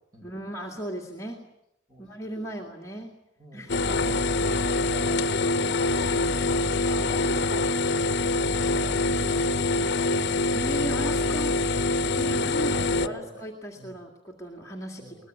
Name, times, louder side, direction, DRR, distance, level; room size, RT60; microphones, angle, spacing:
voice 1, 0.2-1.4 2.0-3.1 3.5-3.8 10.5-11.6 12.1-12.7 13.0-15.3, right 1 dB, 15° left, -1 dB, 2.2 m, -37 dB
voice 2, 1.9-2.3 3.4-5.2 5.9-8.1 8.5-10.3 12.4-13.4 13.8-14.0 15.0-15.2, equal, 20° right, 1 dB, 7.3 m, -44 dB
sound 1, 3.7-13.1, left 2 dB, 60° left, 0.8 m, -25 dB
22.0 x 20.5 x 9.4 m, 0.84 s
head